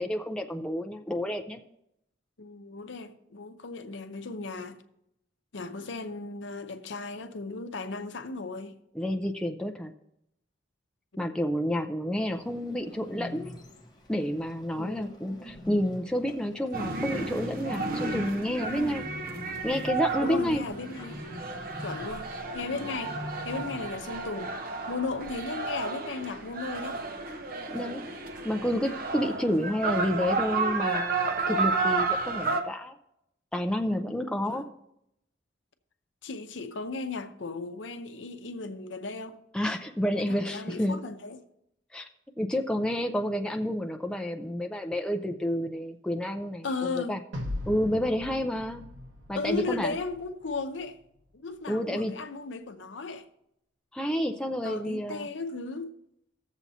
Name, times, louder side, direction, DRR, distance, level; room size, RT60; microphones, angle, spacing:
voice 1, 0.0-1.6 8.9-9.9 11.2-13.5 14.1-19.0 19.6-20.6 27.7-28.0 28.4-33.0 33.5-34.6 39.5-41.0 41.9-42.0 42.4-47.2 47.7-48.8 49.3-50.0 51.7-52.1 53.9-55.3, equal, 5° left, 0.4 m, -29 dB
voice 2, 2.4-4.8 5.5-8.8 14.8-15.1 18.6-19.0 20.2-21.2 21.8-24.5 24.9-27.0 34.1-34.7 36.2-39.4 40.2-41.4 46.6-47.2 49.4-51.0 51.3-53.3 54.6-55.9, left 3 dB, 70° left, 0.7 m, -36 dB
Bird, 12.2-24.3, left 1 dB, 20° left, 1.0 m, -45 dB
sound 1, 16.7-32.6, right 4 dB, 50° right, 0.7 m, -32 dB
sound 2, 47.3-50.6, left 1 dB, 70° right, 1.3 m, -39 dB
16.5 x 7.1 x 2.8 m
head